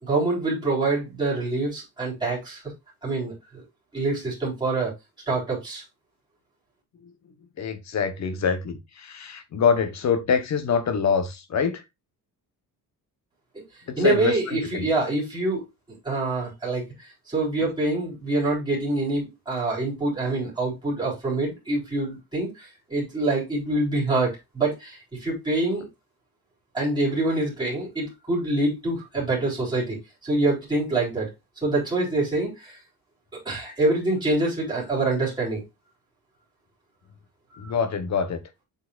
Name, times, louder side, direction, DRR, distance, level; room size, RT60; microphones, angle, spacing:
voice 1, 0.0-2.6 3.0-3.6 3.9-4.9 5.3-5.8 14.0-15.6 16.0-16.8 17.3-25.8 26.7-30.0 30.2-31.3 31.6-32.8 33.4-35.6 37.5-37.7, right 2 dB, 10° right, 4.0 m, -25 dB
voice 2, 7.6-11.8 13.9-14.8 37.6-38.4, left 6 dB, 45° left, 1.1 m, -25 dB
8.2 x 5.6 x 2.5 m
cardioid pair, 180°, 39 cm